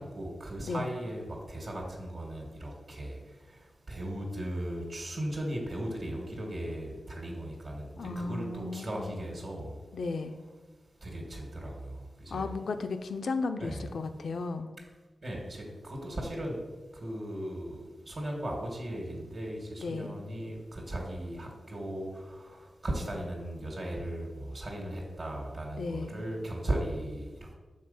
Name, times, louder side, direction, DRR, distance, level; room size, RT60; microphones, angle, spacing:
voice 1, 0.0-3.2 3.9-9.7 11.0-11.9 12.2-12.5 13.6-13.9 15.2-16.6 17.0-27.5, right 1 dB, 60° right, -1 dB, 1.7 m, -37 dB
voice 2, 0.6-0.9 8.0-9.2 9.9-10.4 12.3-14.7 19.8-20.2 25.8-26.2, left 3 dB, 75° left, 8 dB, 0.5 m, -35 dB
6.4 x 3.6 x 5.5 m, 1.3 s
cardioid pair, 50°, 0 cm